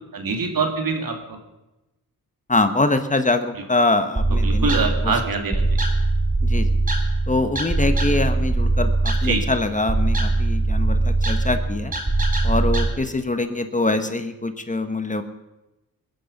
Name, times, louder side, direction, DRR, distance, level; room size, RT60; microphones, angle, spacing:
voice 1, 0.1-1.4 3.5-3.6 4.3-5.6 9.2-9.4, right 4 dB, 70° right, 4 dB, 2.7 m, -24 dB
voice 2, 2.5-4.7 6.4-6.7 7.3-11.9 12.4-15.2, left 2 dB, 20° left, 8 dB, 1.3 m, -23 dB
sound 1, 4.1-12.9, right 2 dB, 25° right, 2.7 m, -21 dB
21.0 x 10.5 x 5.5 m, 1.0 s
cardioid pair, 85°, 36 cm